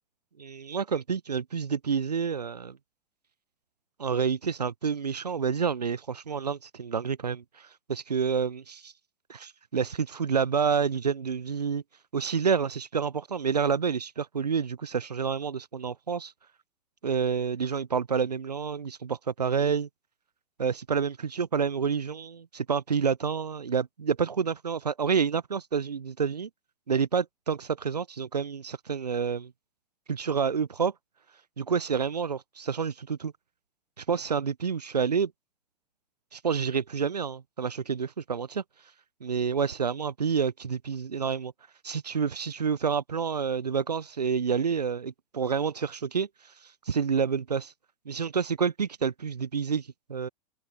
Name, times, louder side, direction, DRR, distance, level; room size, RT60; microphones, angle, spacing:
voice 1, 0.4-2.8 4.0-8.9 9.3-11.8 12.1-16.3 17.0-19.9 20.6-26.5 26.9-29.5 30.1-30.9 31.6-33.3 34.0-35.3 36.3-38.6 39.2-41.5 41.8-46.3 46.9-47.7 48.1-50.3, right 6 dB, 85° right, 0.6 m, -28 dB
figure-of-eight pair, 90°, 20 cm